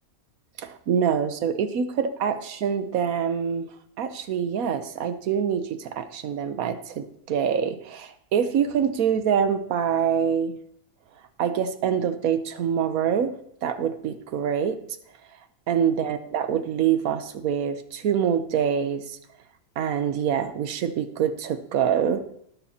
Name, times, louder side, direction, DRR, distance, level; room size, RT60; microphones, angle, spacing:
voice 1, 0.6-3.7 4.0-10.5 11.4-13.3 13.6-14.8 15.7-19.2 19.8-22.2, right 8 dB, 75° right, 10 dB, 1.3 m, -25 dB
19.0 x 11.5 x 2.9 m, 0.72 s
omnidirectional pair, 1.5 m